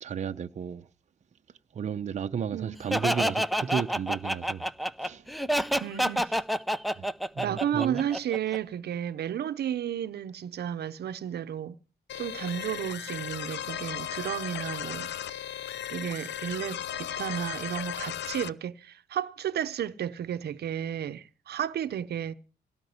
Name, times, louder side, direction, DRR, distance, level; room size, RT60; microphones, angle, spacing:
voice 1, 0.0-0.9 1.7-4.7 5.0-5.2 7.0-7.1 7.3-8.0, right 7 dB, 40° right, 0.7 m, -33 dB
Laughter, 2.9-8.6, equal, ahead, 0.6 m, -28 dB
voice 2, 5.8-6.4 7.4-11.8 12.2-15.1 15.9-22.3, right 9 dB, 70° right, 0.8 m, -33 dB
sound 1, 12.1-18.5, left 10 dB, 85° left, 0.7 m, -36 dB
17.5 x 5.9 x 9.5 m
cardioid pair, 125°, 18 cm